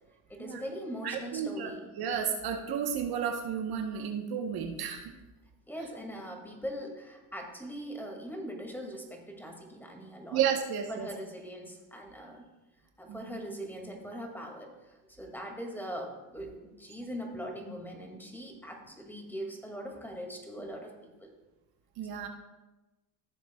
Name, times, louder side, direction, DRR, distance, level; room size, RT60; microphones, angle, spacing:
voice 1, 0.3-1.9 5.7-10.4 10.9-12.4 13.0-21.3, equal, 5° left, 1 dB, 2.1 m, -41 dB
voice 2, 1.0-1.7 2.0-5.1 10.3-11.1 13.1-13.4 22.0-22.3, right 8 dB, 60° right, 4 dB, 1.1 m, -32 dB
15.0 x 7.2 x 2.3 m, 1.1 s
supercardioid pair, 90°, 42 cm